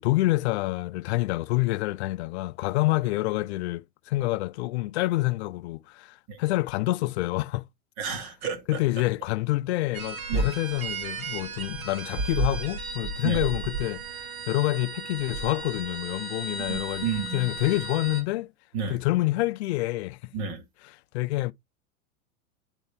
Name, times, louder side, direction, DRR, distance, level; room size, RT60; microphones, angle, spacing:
voice 1, 0.0-7.6 8.7-17.1 17.3-18.5 18.9-20.2 21.1-21.5, left 18 dB, 50° left, 0.5 m, -27 dB
voice 2, 8.0-8.8 10.3-10.5 13.2-13.4 16.6-17.5 18.7-19.0 20.3-20.6, right 6 dB, 50° right, 2.4 m, -32 dB
sound 1, 9.9-18.2, right 3 dB, 75° right, 2.7 m, -33 dB
9.8 x 3.9 x 3.4 m
figure-of-eight pair, 95°, 43 cm